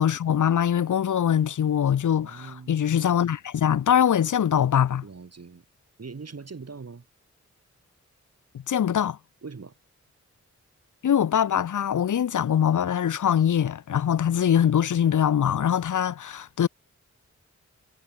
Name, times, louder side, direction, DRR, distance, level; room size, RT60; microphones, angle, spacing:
voice 1, 0.0-5.0 8.7-9.2 11.0-16.7, left 9 dB, 90° left, 0.8 m, -23 dB
voice 2, 2.2-2.8 5.0-5.6 6.0-7.1 9.4-9.7, right 4 dB, 55° right, 4.4 m, -41 dB
cardioid pair, 65°, 29 cm